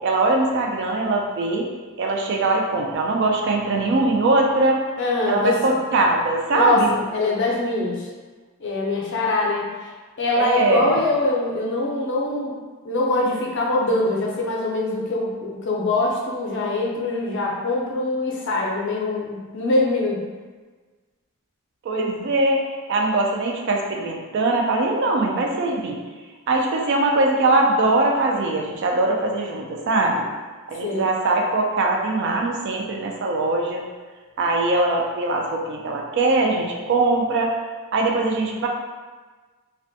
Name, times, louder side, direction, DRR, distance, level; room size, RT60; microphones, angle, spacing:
voice 1, 0.0-1.7 2.0-4.8 5.3-6.9 10.4-11.0 21.8-26.0 26.5-30.3 30.7-33.8 34.4-37.6 37.9-38.7, right 2 dB, 50° right, 0 dB, 0.3 m, -21 dB
voice 2, 5.0-5.6 6.5-6.8 7.1-8.1 8.6-12.6 12.8-20.2 30.8-31.1, left 2 dB, 55° left, -2 dB, 0.5 m, -23 dB
2.4 x 2.2 x 2.6 m, 1.4 s
head